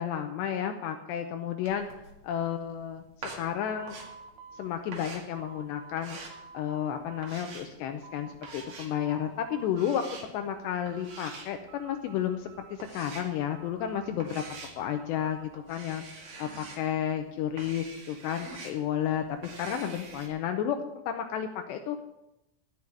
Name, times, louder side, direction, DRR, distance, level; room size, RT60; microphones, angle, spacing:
voice 1, 0.0-1.9 2.2-4.0 4.6-6.2 6.5-14.4 14.8-22.0, left 9 dB, 80° left, 6 dB, 2.4 m, -32 dB
sound 1, 1.6-20.3, right 3 dB, 50° right, 2.5 m, -47 dB
sound 2, 3.6-6.1 6.3-7.4 7.8-8.7 9.0-10.1 10.4-11.4 11.7-13.0 13.4-15.5, right 6 dB, 75° right, 2.4 m, -51 dB
13.5 x 6.2 x 9.6 m, 0.92 s
omnidirectional pair, 5.8 m